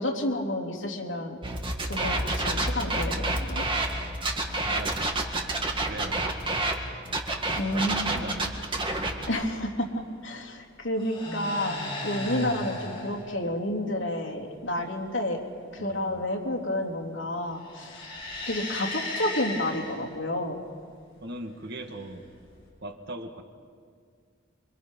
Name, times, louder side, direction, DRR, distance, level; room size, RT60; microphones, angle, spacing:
voice 1, 0.0-1.4 1.8-3.6 7.6-8.2 9.3-9.9 10.2-11.8 12.0-15.4 15.7-18.2 18.5-20.6, left 1 dB, 70° left, 0 dB, 3.4 m, -30 dB
sound 1, 1.4-6.7 7.1-9.3, right 2 dB, 25° right, 2.1 m, -28 dB
voice 2, 4.7-5.0 5.8-6.3 7.7-8.5 15.8-16.2 21.2-22.2 22.8-23.4, right 1 dB, 55° right, 5 dB, 1.8 m, -39 dB
sound 2, 7.4-7.9 9.4-9.8 10.8-13.3 17.5-20.1 21.9-22.7, left 2 dB, 25° left, 7.5 m, -36 dB
28.5 x 25.0 x 5.4 m, 2.2 s
head